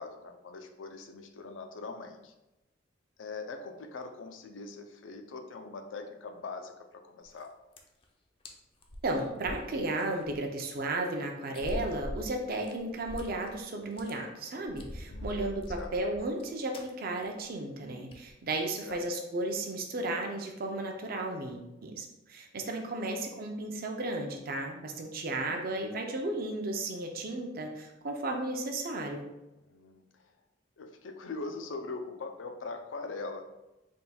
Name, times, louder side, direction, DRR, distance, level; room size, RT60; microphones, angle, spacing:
voice 1, 0.0-2.3 3.2-7.5 15.1-15.9 18.8-19.0 22.8-22.9 25.3-25.6 29.7-30.3 30.8-33.4, left 3 dB, 85° left, 6 dB, 0.5 m, -42 dB
sound 1, 7.2-7.5 7.7-8.0 8.4-8.5 8.8-10.3 10.7-10.8 11.5-13.6 13.8-14.1 14.6-16.4 16.7-16.9 17.2-17.4 17.7-17.8 18.1-18.3 18.8-19.0, equal, 30° left, 0.4 m, -42 dB
voice 2, 9.0-29.2, right 2 dB, 50° right, 2 dB, 0.5 m, -34 dB
3.5 x 2.2 x 4.1 m, 0.97 s
head